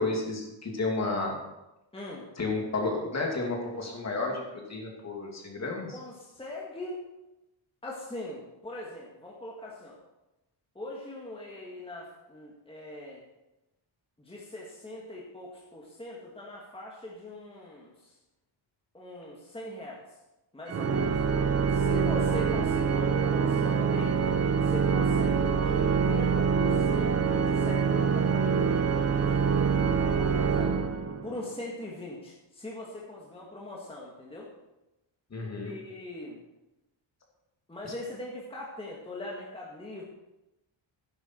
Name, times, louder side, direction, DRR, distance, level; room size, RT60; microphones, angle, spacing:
voice 1, 0.0-1.4 2.4-6.0 35.3-35.7, left 3 dB, 35° left, 0 dB, 2.6 m, -31 dB
voice 2, 1.9-2.3 5.9-7.0 7.8-10.0 10.8-13.2 14.2-18.1 18.9-20.0 20.5-21.1 21.7-24.2 24.6-30.8 31.2-34.5 35.6-36.4 37.7-40.0, left 1 dB, 10° left, -3 dB, 1.9 m, -41 dB
Organ, 20.7-31.5, right 6 dB, 30° right, 0.8 m, -25 dB
12.0 x 10.5 x 4.5 m, 0.95 s
wide cardioid pair, 140°, 47 cm